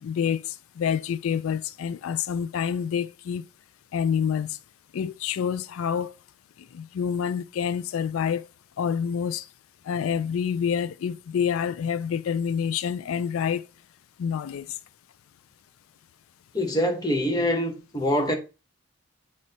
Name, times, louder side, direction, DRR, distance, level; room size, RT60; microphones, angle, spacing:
voice 1, 0.0-3.4 3.9-4.6 4.9-6.1 6.7-8.5 8.8-9.5 9.8-13.6 14.2-14.8, left 7 dB, 85° left, 0.3 m, -27 dB
voice 2, 16.5-18.4, equal, 20° left, 0.9 m, -24 dB
8.5 x 3.2 x 4.1 m
head